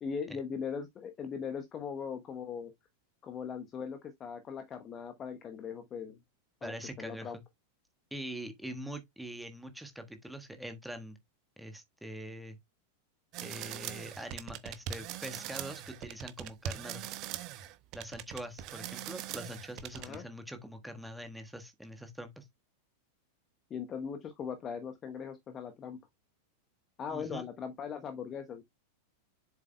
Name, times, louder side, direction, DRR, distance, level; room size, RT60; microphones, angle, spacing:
voice 1, 0.0-2.7 3.2-6.2 6.6-7.4 20.0-20.2 23.7-26.0 27.0-28.6, left 6 dB, 25° left, 1.0 m, -39 dB
voice 2, 6.6-7.4 8.1-11.2 11.6-12.6 13.4-17.0 17.9-22.4 27.1-27.4, right 1 dB, ahead, 1.5 m, -43 dB
sound 1, 13.3-20.2, right 11 dB, 40° right, 0.8 m, -41 dB
7.5 x 7.3 x 2.2 m
figure-of-eight pair, 90°, 0 cm